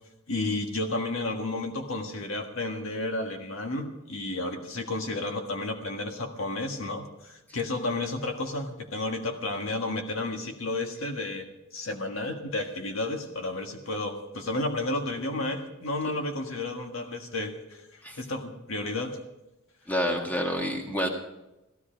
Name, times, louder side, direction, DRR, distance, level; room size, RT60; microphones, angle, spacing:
voice 1, 0.3-19.2, left 2 dB, 70° left, 4 dB, 1.6 m, -32 dB
voice 2, 19.9-21.1, equal, 10° left, 1 dB, 1.7 m, -28 dB
16.0 x 13.0 x 5.1 m, 0.97 s
head